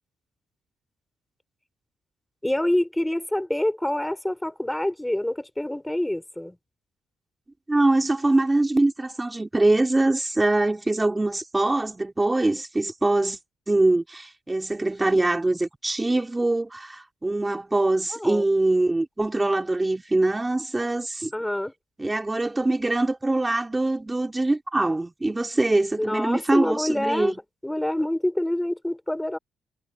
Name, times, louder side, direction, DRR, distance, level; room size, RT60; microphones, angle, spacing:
voice 1, 2.4-6.6 18.1-18.4 21.3-21.7 26.0-27.3 27.6-29.4, left 1 dB, 5° left, 3.3 m, -26 dB
voice 2, 7.7-13.4 13.7-21.3 22.0-27.3, right 2 dB, 15° right, 3.0 m, -23 dB
cardioid pair, 90°, 0 cm